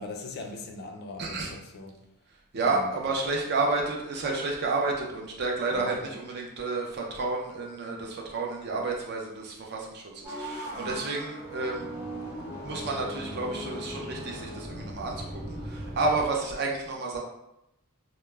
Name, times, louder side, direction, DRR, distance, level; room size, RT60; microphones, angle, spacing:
voice 1, 0.0-2.0 2.6-3.0 5.7-6.2 10.7-11.0, left 2 dB, 45° left, 3 dB, 0.3 m, -41 dB
voice 2, 1.2-1.5 2.5-11.9 12.6-17.2, right 3 dB, 50° right, 0 dB, 0.5 m, -30 dB
sound 1, 10.2-16.2, equal, 10° right, 0.9 m, -38 dB
2.2 x 2.0 x 3.1 m, 0.85 s
head